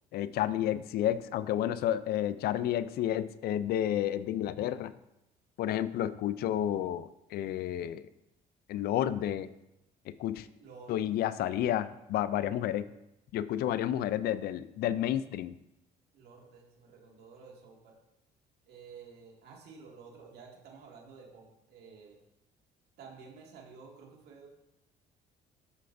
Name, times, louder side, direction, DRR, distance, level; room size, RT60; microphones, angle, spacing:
voice 1, 0.1-4.9 5.6-8.0 8.7-9.5 10.2-10.5 10.9-12.9 13.3-15.5, left 11 dB, 65° left, 15 dB, 0.4 m, -31 dB
voice 2, 10.6-11.0 16.1-18.0 18.7-22.2 23.0-24.5, right 5 dB, 75° right, -2 dB, 2.1 m, -52 dB
8.2 x 6.7 x 2.6 m, 0.90 s
cardioid pair, 110°, 17 cm